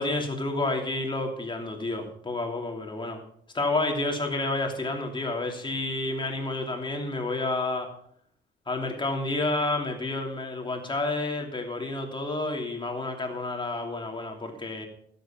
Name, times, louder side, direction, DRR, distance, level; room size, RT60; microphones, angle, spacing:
voice 1, 0.0-3.2 3.5-7.9 8.7-14.9, left 2 dB, 25° left, 2 dB, 2.9 m, -30 dB
13.0 x 8.4 x 5.8 m, 0.68 s
cardioid pair, 90°, 20 cm